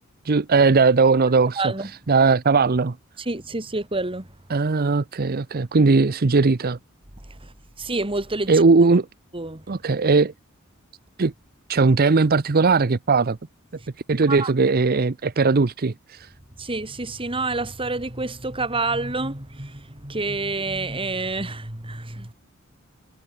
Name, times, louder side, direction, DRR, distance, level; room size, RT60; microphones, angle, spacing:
voice 1, 0.2-1.7 2.1-3.0 4.5-6.8 8.5-9.1 9.7-10.3 11.2-11.3 11.7-13.4 14.1-16.3, right 4 dB, 45° right, 0.7 m, -19 dB
voice 2, 1.6-1.9 3.2-4.3 7.3-8.6 9.3-9.6 14.3-14.5 16.6-22.3, right 3 dB, 25° right, 2.6 m, -28 dB
head